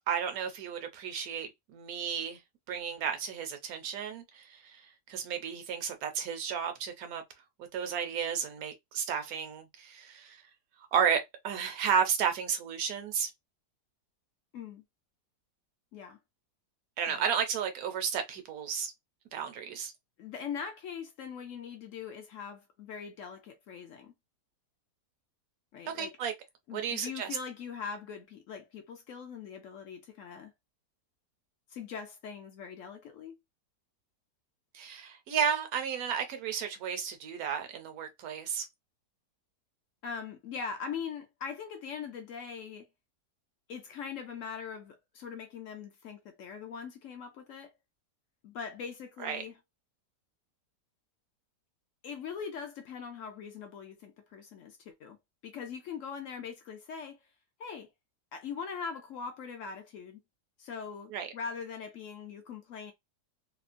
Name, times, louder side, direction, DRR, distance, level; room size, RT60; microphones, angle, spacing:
voice 1, 0.1-2.4 2.7-7.2 7.7-10.4 10.9-13.3 17.0-18.9 19.3-19.9 25.9-26.3 26.7-27.4 34.7-38.7 49.2-49.4 61.1-61.3, right 7 dB, 70° right, 1.0 m, -33 dB
voice 2, 14.5-14.8 15.9-16.2 17.1-17.2 20.2-24.1 25.7-26.2 26.7-30.5 31.7-33.4 40.0-42.9 43.7-47.7 48.4-49.6 52.0-55.2 55.4-57.2 57.6-57.9 58.3-60.2 60.6-62.9, left 6 dB, 65° left, 0.8 m, -41 dB
2.9 x 2.0 x 2.5 m
omnidirectional pair, 1.8 m